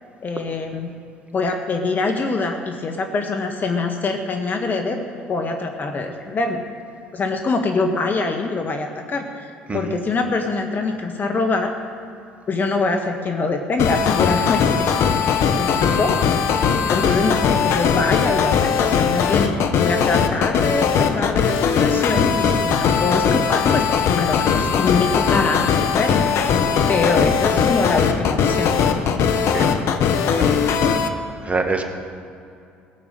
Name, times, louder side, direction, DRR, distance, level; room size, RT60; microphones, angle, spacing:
voice 1, 0.2-0.9 1.3-6.6 7.1-11.7 12.5-14.9 15.5-16.2 16.9-23.8 24.2-26.6 26.9-28.7, left 3 dB, 40° left, 4 dB, 1.4 m, -24 dB
sound 1, 13.8-31.1, left 6 dB, 60° left, 1.1 m, -19 dB
voice 2, 31.4-31.8, right 3 dB, 25° right, 4 dB, 2.0 m, -25 dB
17.5 x 6.9 x 7.7 m, 2.5 s
hypercardioid pair, 60°, 5 cm